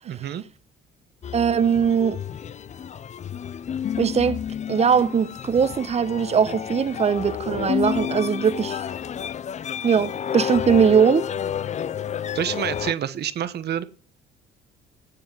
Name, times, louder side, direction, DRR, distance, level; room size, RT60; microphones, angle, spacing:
voice 1, 0.0-0.4 12.3-13.8, right 10 dB, 60° right, 1.3 m, -28 dB
sound 1, 1.2-12.9, left 8 dB, 35° left, 0.5 m, -30 dB
voice 2, 1.3-2.2 4.0-4.4 4.7-8.8 9.8-11.2, right 7 dB, 35° right, 0.9 m, -20 dB
17.5 x 7.9 x 6.0 m
cardioid pair, 95°, 19 cm